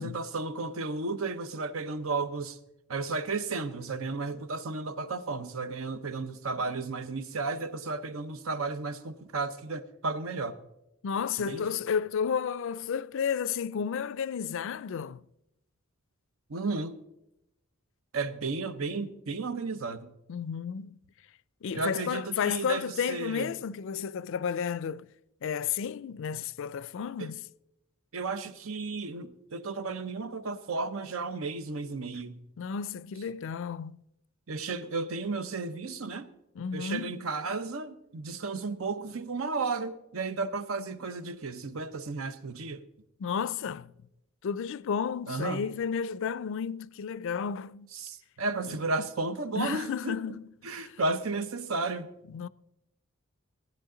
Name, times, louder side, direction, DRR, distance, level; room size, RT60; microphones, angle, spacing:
voice 1, 0.0-2.6 2.9-10.6 11.4-11.7 16.5-17.0 18.1-20.1 21.7-23.5 27.2-27.3 28.1-32.4 34.5-36.3 36.7-42.8 45.3-45.6 47.9-50.2 50.6-52.1, right 3 dB, 85° right, 0.8 m, -33 dB
voice 2, 11.0-15.2 20.3-21.0 21.6-25.1 25.4-27.4 32.6-34.0 36.6-37.2 43.2-43.9 44.4-47.9 48.6-48.8 49.6-51.0 52.3-52.5, left 7 dB, 65° left, 0.4 m, -32 dB
16.0 x 10.5 x 3.8 m
head